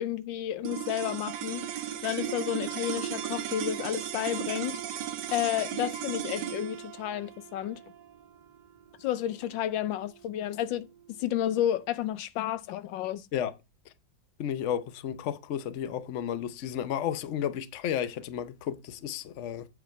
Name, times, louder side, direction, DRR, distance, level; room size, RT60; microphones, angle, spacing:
voice 1, 0.0-1.7 2.0-4.8 5.3-7.8 9.0-10.9 11.2-13.3, left 11 dB, 85° left, 1.4 m, -31 dB
sound 1, 0.6-11.1, right 11 dB, 70° right, 1.3 m, -36 dB
voice 2, 14.4-19.7, left 9 dB, 60° left, 0.8 m, -32 dB
8.0 x 4.9 x 4.5 m
omnidirectional pair, 2.0 m